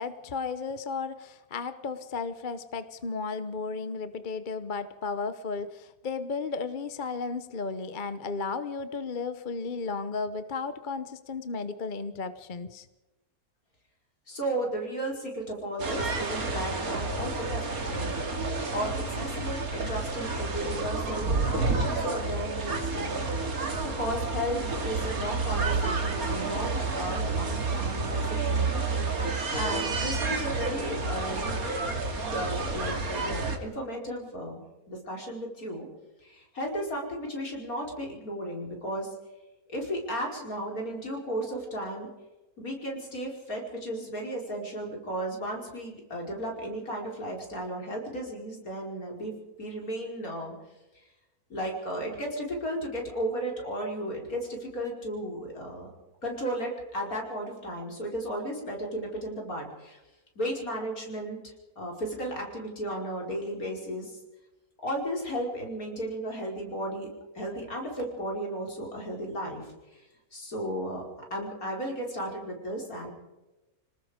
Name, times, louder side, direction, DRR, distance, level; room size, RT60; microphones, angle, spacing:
voice 1, 0.0-12.9, left 4 dB, 40° left, 11 dB, 1.0 m, -34 dB
voice 2, 14.3-18.2 18.7-23.2 23.8-29.3 29.5-31.5 32.2-35.9 36.2-39.1 39.7-42.1 42.6-49.3 49.6-50.5 51.5-55.9 56.2-60.0 60.4-64.2 64.8-67.1 67.3-69.7 70.3-71.0 71.3-73.1, equal, 70° left, 0 dB, 5.6 m, -34 dB
sound 1, 15.8-33.6, right 3 dB, 70° right, 2.8 m, -30 dB
27.0 x 19.0 x 5.2 m, 1.0 s
omnidirectional pair, 1.6 m